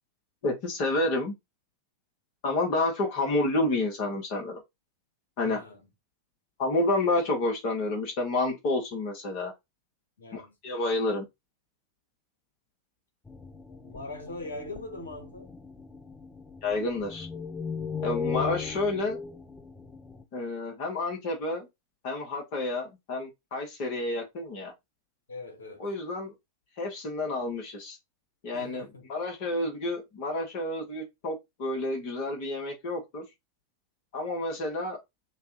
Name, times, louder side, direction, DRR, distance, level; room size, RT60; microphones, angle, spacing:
voice 1, 0.4-1.3 2.4-4.6 5.4-5.6 6.6-9.5 10.3-11.2 16.6-17.3 18.0-19.2 20.3-21.7 22.0-24.7 25.8-26.3 26.8-28.0 28.4-33.2 34.1-35.0, left 2 dB, 45° left, 1.8 m, -29 dB
voice 2, 5.4-5.8 10.2-10.5 13.8-15.5 25.3-25.9 28.5-29.1, left 2 dB, 70° left, 1.7 m, -41 dB
sound 1, 13.3-20.2, left 6 dB, 15° left, 0.8 m, -38 dB
6.6 x 2.6 x 3.1 m
figure-of-eight pair, 90°, 0 cm